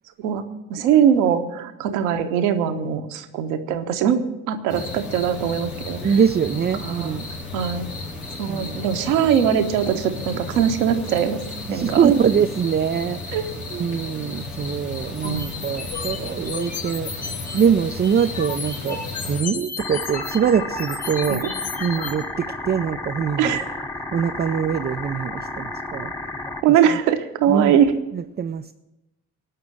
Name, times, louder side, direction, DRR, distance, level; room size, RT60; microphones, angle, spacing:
voice 1, 0.7-4.2 4.5-6.1 6.8-7.2 7.5-7.9 8.4-11.4 11.7-12.2 13.3-13.4 15.2-15.5 21.3-21.4 23.4-23.7 26.6-27.9, right 8 dB, 70° right, 6 dB, 1.2 m, -21 dB
sound 1, 4.7-19.4, left 3 dB, 90° left, 1.2 m, -34 dB
voice 2, 6.0-7.3 8.5-8.8 11.7-19.0 19.2-21.4 21.8-23.6 24.1-26.1 27.5-27.8 28.1-28.7, right 7 dB, 25° right, 7 dB, 0.5 m, -23 dB
sound 2, 15.2-17.7 18.0-22.1, left 5 dB, 75° left, 2.5 m, -33 dB
sound 3, 19.8-26.6, left 2 dB, 10° left, 1.1 m, -32 dB
17.5 x 6.1 x 8.8 m, 0.95 s
figure-of-eight pair, 40°, 42 cm